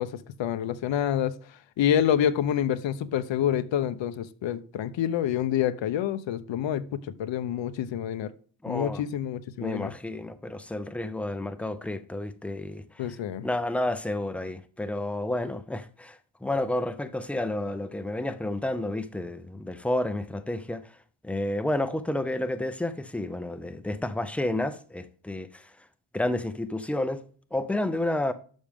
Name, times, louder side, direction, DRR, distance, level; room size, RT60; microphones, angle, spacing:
voice 1, 0.0-1.4 1.8-8.3 8.7-9.9 13.0-13.5, left 10 dB, 85° left, 0.7 m, -27 dB
voice 2, 8.6-9.0 9.6-13.1 13.4-20.8 21.2-25.7 26.1-27.2 27.5-28.3, left 1 dB, 5° left, 0.4 m, -30 dB
11.5 x 6.3 x 3.5 m
wide cardioid pair, 175°, 44 cm